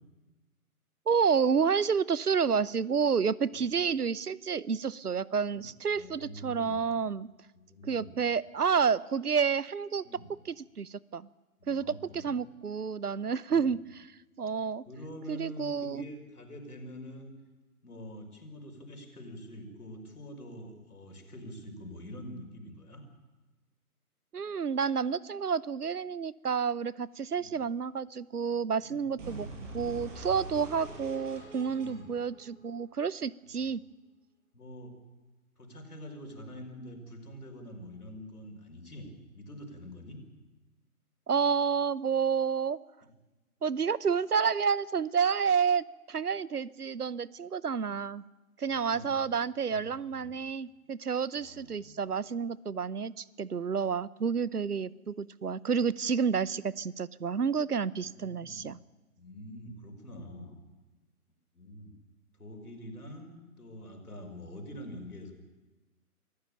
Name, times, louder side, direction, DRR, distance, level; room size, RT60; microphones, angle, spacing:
voice 1, 1.1-7.3 7.8-11.3 11.7-14.0 14.4-14.8 15.3-16.1 24.3-29.5 29.7-33.8 41.3-42.8 43.6-48.2 48.6-58.8, right 6 dB, 90° right, 22 dB, 0.8 m, -30 dB
voice 2, 5.5-6.8 7.5-8.2 10.0-10.3 11.6-12.2 13.5-13.7 14.9-17.3 17.8-23.0 27.4-27.6 28.8-29.1 29.5-29.7 30.4-30.7 31.6-32.1 33.6-33.7 34.5-35.0 35.6-40.2 43.0-43.1 48.6-49.3 49.7-50.3 51.3-52.0 58.0-58.7 59.2-60.6 61.5-61.9 62.4-65.3, equal, 80° left, 4 dB, 5.5 m, -46 dB
sound 1, 29.2-33.2, right 2 dB, 55° right, 7.9 m, -44 dB
24.0 x 14.5 x 9.1 m, 1.2 s
figure-of-eight pair, 135°, 45 cm